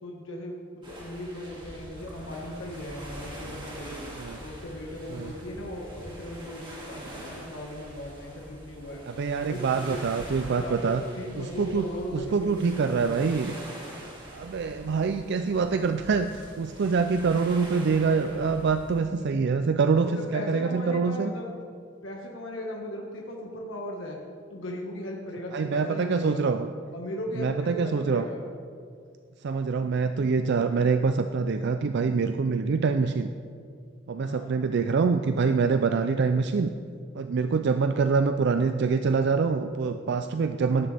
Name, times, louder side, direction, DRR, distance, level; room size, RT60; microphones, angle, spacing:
voice 1, 0.0-4.0 4.4-9.0 9.4-10.0 10.4-12.6 12.9-13.2 20.0-21.5 22.0-24.2 24.5-26.5 26.9-28.4 34.2-34.5, left 1 dB, 75° left, -1 dB, 1.6 m, -37 dB
sound 1, 0.8-19.0, right 1 dB, 25° right, 2.4 m, -44 dB
voice 2, 9.1-11.0 11.4-11.9 12.1-13.5 14.3-21.3 25.5-26.7 27.4-28.3 29.4-33.3 34.1-36.7 37.2-40.9, right 5 dB, 60° right, 8 dB, 0.4 m, -25 dB
17.5 x 11.0 x 3.5 m, 2.3 s
head